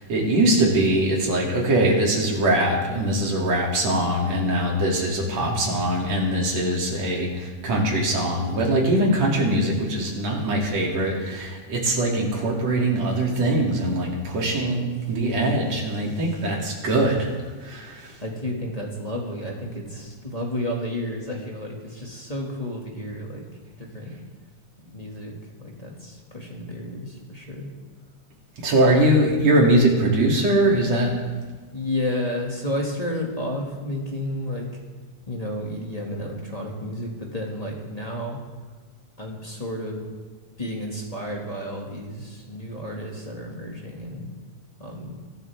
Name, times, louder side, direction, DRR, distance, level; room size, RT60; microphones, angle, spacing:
voice 1, 0.0-17.3 17.6-18.1 28.6-31.1, right 1 dB, 50° right, -2 dB, 4.1 m, -22 dB
voice 2, 5.4-5.8 16.9-17.2 18.2-23.4 23.8-24.2 24.8-27.7 28.8-29.1 31.7-34.7 35.3-38.4 39.2-40.1 40.6-44.3 44.8-45.2, left 1 dB, 15° left, -2 dB, 1.8 m, -31 dB
24.5 x 12.5 x 3.7 m, 1.4 s
omnidirectional pair, 3.9 m